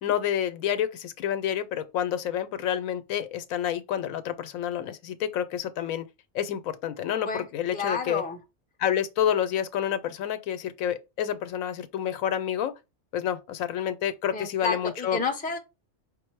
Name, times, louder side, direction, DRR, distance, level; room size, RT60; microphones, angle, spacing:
voice 1, 0.0-6.1 6.3-8.2 8.8-12.7 13.1-15.2, left 10 dB, 90° left, 1.0 m, -29 dB
voice 2, 7.7-8.4 14.3-15.6, left 4 dB, 10° left, 0.4 m, -30 dB
5.3 x 2.0 x 4.5 m
omnidirectional pair, 1.4 m